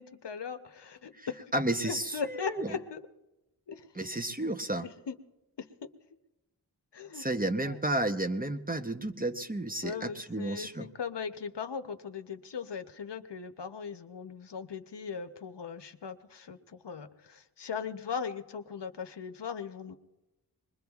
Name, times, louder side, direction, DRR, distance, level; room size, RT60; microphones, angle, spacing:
voice 1, 0.0-1.5 1.9-3.0 3.7-3.9 4.8-5.2 5.6-5.9 6.9-7.3 7.6-7.8 9.8-20.0, left 6 dB, 70° left, 9 dB, 0.8 m, -39 dB
voice 2, 1.2-2.8 3.9-4.9 7.1-10.9, right 1 dB, 20° right, 7 dB, 0.7 m, -32 dB
24.5 x 21.0 x 2.4 m, 1.0 s
wide cardioid pair, 55°, 43 cm